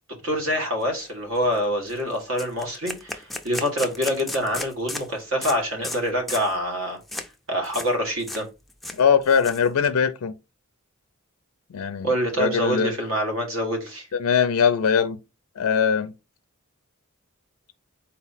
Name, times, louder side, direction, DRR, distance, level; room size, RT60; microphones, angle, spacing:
voice 1, 0.2-7.0 7.5-8.4 12.0-14.1, equal, 65° right, 1.7 m, -26 dB
sound 1, 1.0-1.1 1.4-1.6 1.9-2.0 2.4-5.1 5.4-5.6 5.8-6.0 6.3-6.5 7.1-7.3 7.6-7.9 8.2-8.4 8.7-9.9, left 1 dB, ahead, 0.4 m, -34 dB
voice 2, 9.0-10.3 11.7-12.1 12.4-12.9 14.1-15.2 15.6-16.1, left 6 dB, 90° left, 0.4 m, -21 dB
4.2 x 3.0 x 4.1 m
head